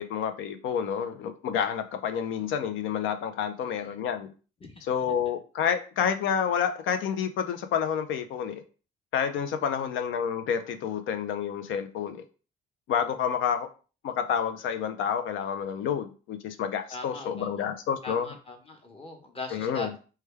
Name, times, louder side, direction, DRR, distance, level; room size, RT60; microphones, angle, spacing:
voice 1, 0.0-4.3 4.9-8.6 9.1-12.2 12.9-13.7 14.0-18.3 19.5-19.9, left 8 dB, 80° left, 9 dB, 0.5 m, -29 dB
voice 2, 3.6-4.0 4.6-5.1 9.6-9.8 16.9-17.6 18.0-20.0, left 3 dB, 30° left, 3 dB, 0.9 m, -41 dB
3.2 x 2.2 x 3.3 m, 0.36 s
cardioid pair, 90°, 20 cm